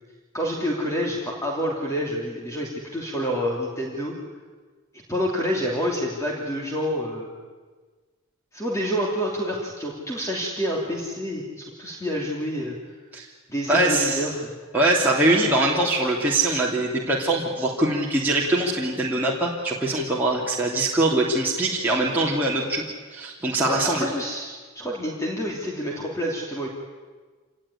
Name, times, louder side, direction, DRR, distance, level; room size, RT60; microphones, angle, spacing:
voice 1, 0.3-4.1 5.1-7.3 8.5-12.8 13.5-14.5 23.7-26.7, equal, 15° left, -2 dB, 3.1 m, -28 dB
voice 2, 13.7-14.2 14.7-22.8 23.1-24.1, right 2 dB, 10° right, -5 dB, 2.9 m, -22 dB
26.5 x 19.0 x 9.8 m, 1.4 s
head